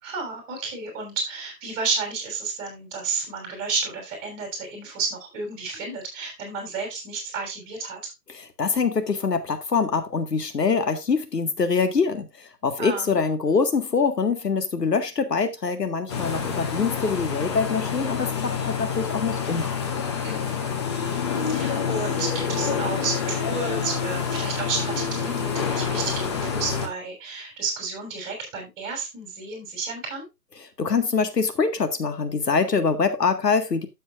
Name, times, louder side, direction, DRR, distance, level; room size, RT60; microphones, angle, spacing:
voice 1, 0.0-8.1 12.8-13.2 20.2-20.7 21.5-30.2, right 4 dB, 20° right, 6.4 m, -31 dB
voice 2, 8.3-19.8 30.8-33.9, left 5 dB, 70° left, 1.8 m, -24 dB
sound 1, 16.1-26.9, left 6 dB, 15° left, 0.9 m, -27 dB
12.5 x 7.9 x 2.5 m
figure-of-eight pair, 145°, 50 cm